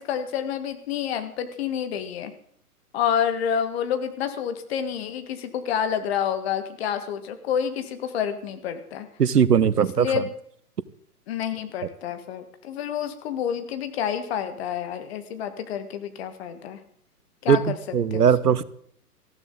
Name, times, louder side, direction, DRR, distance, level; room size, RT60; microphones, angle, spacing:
voice 1, 0.0-2.3 2.9-9.1 9.8-10.3 11.3-16.8 17.4-17.8 18.1-18.6, left 8 dB, 40° left, 1.8 m, -28 dB
voice 2, 9.2-10.1 17.5-17.6 17.9-18.6, right 7 dB, 75° right, 0.9 m, -19 dB
19.0 x 14.0 x 3.9 m
figure-of-eight pair, 120°, 47 cm